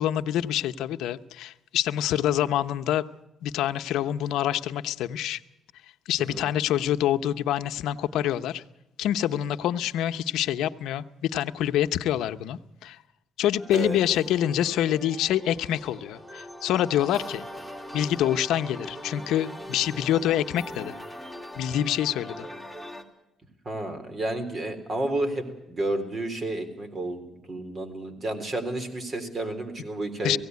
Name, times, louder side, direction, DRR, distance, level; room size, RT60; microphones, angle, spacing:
voice 1, 0.0-3.1 3.4-5.4 6.1-8.6 9.0-13.0 13.4-17.5 17.9-20.9 21.6-22.5 30.2-30.4, left 11 dB, 90° left, 10 dB, 0.8 m, -26 dB
sound 1, 13.6-23.0, equal, 10° right, 2.9 m, -41 dB
voice 2, 23.7-30.4, right 1 dB, 40° right, 7 dB, 3.7 m, -31 dB
17.0 x 16.5 x 9.4 m, 0.90 s
cardioid pair, 90°, 0 cm